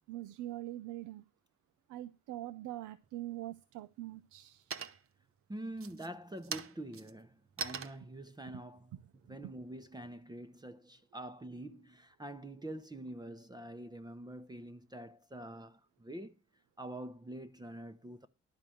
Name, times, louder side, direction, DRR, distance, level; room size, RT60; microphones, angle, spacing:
voice 1, 0.1-1.2 1.9-4.6 9.3-9.5, right 14 dB, 85° right, 0.6 m, -43 dB
sound 1, 3.0-3.6 4.0-4.5 4.7-5.3 5.7-10.1, right 6 dB, 45° right, 0.9 m, -44 dB
voice 2, 5.5-9.0 9.3-16.4 16.8-18.3, right 1 dB, 15° right, 0.8 m, -46 dB
11.0 x 4.8 x 7.7 m
cardioid pair, 90°, 30 cm